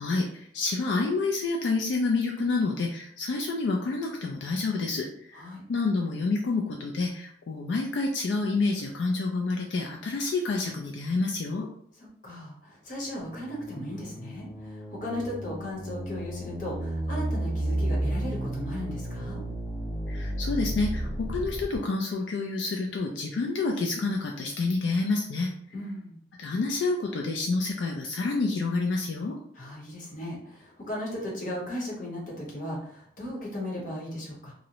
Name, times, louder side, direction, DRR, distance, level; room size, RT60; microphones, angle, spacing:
voice 1, 0.0-11.7 20.1-25.5 26.4-29.4, left 3 dB, 80° left, 0 dB, 0.3 m, -28 dB
voice 2, 12.2-19.4 25.7-26.2 29.5-34.5, left 1 dB, 45° left, -3 dB, 0.8 m, -36 dB
sound 1, 13.0-21.8, right 1 dB, 15° right, 0.8 m, -33 dB
2.6 x 2.0 x 2.8 m, 0.64 s
head